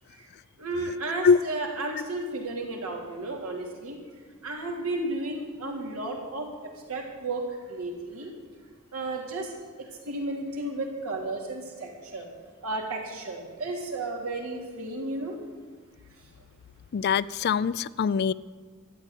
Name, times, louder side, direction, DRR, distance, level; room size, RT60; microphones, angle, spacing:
voice 1, 0.6-4.0 4.4-8.3 8.9-12.3 12.6-15.4, right 2 dB, 80° right, 0 dB, 3.1 m, -33 dB
voice 2, 16.9-18.3, left 6 dB, 50° left, 19 dB, 0.3 m, -23 dB
13.0 x 8.7 x 9.8 m, 1.5 s
head